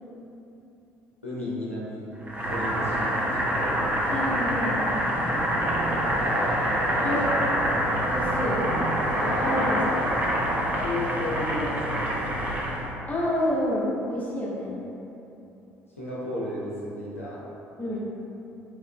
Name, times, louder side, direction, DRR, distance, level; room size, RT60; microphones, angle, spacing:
voice 1, 1.2-2.0 2.4-3.8 7.0-7.5 9.8-10.1 10.7-12.7 16.0-17.4, left 1 dB, 90° left, -9 dB, 0.6 m, -34 dB
Boiling, 2.3-12.9, equal, 20° right, 0.7 m, -26 dB
voice 2, 4.1-5.0 7.0-7.5 8.1-8.6 9.2-9.8 13.1-14.7 17.8-18.1, left 1 dB, 25° left, -6 dB, 0.9 m, -28 dB
sound 1, 4.6-10.6, right 1 dB, 35° right, 1.3 m, -35 dB
4.5 x 3.5 x 2.2 m, 3.0 s
figure-of-eight pair, 55°, 7 cm